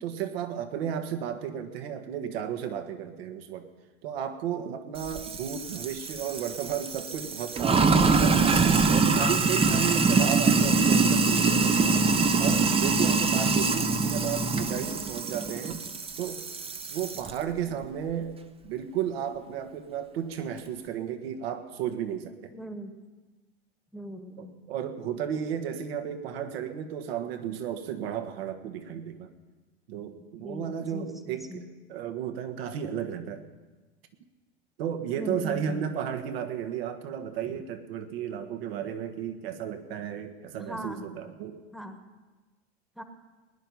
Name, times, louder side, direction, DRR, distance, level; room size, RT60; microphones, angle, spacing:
voice 1, 0.0-3.7 4.0-8.5 8.9-12.0 12.4-15.8 16.2-16.4 16.9-18.4 18.6-22.5 24.4-29.3 29.9-33.4 34.8-41.6, right 9 dB, 65° right, 8 dB, 1.6 m, -34 dB
Sink (filling or washing), 5.0-17.3, right 4 dB, 20° right, 0.9 m, -24 dB
voice 2, 22.5-22.9 23.9-24.6 30.4-31.6 35.2-35.9 40.6-41.1 41.7-42.0 43.0-43.1, equal, ahead, 7 dB, 1.4 m, -40 dB
20.0 x 10.5 x 5.5 m, 1.2 s
hypercardioid pair, 90°, 32 cm